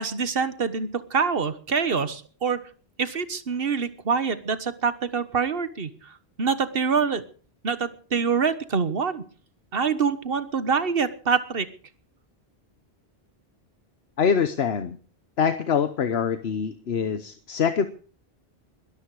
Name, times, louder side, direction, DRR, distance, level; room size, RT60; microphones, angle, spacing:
voice 1, 0.0-2.6 3.0-7.2 7.6-9.2 9.7-11.7, right 5 dB, 65° right, 13 dB, 1.5 m, -25 dB
voice 2, 14.2-15.0 15.4-17.9, left 7 dB, 75° left, 11 dB, 1.2 m, -24 dB
22.0 x 13.0 x 4.9 m, 0.42 s
omnidirectional pair, 1.1 m